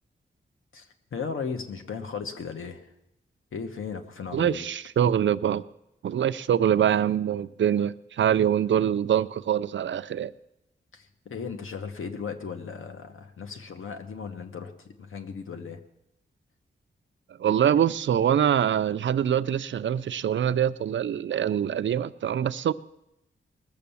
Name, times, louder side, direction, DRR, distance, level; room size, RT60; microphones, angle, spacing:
voice 1, 0.7-2.9 3.5-4.7 10.9-15.8, left 5 dB, 80° left, 6 dB, 1.2 m, -36 dB
voice 2, 4.3-5.6 6.0-10.3 17.4-22.7, right 9 dB, 65° right, 15 dB, 0.4 m, -24 dB
20.0 x 6.8 x 7.0 m, 0.88 s
wide cardioid pair, 125°, 21 cm